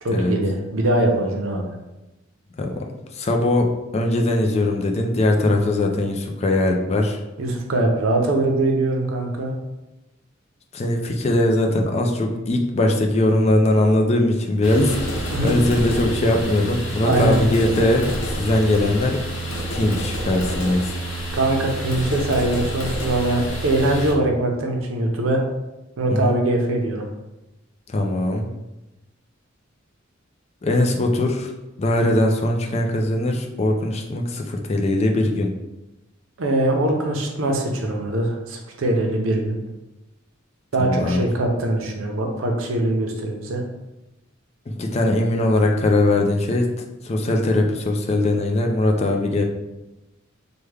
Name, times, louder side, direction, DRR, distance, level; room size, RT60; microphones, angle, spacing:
voice 1, 0.0-1.7 7.4-9.5 15.3-15.6 17.0-17.4 21.3-25.4 26.0-27.0 36.4-39.6 40.7-43.6, right 1 dB, 85° right, 2 dB, 0.6 m, -22 dB
voice 2, 3.1-7.2 10.7-19.2 19.7-21.0 26.1-26.4 27.9-28.5 30.6-31.5 31.8-35.5 40.8-41.3 44.7-49.4, left 1 dB, 30° left, 3 dB, 0.4 m, -20 dB
sound 1, 14.6-24.1, right 1 dB, 70° left, 0.8 m, -28 dB
3.3 x 2.2 x 3.2 m, 0.98 s
head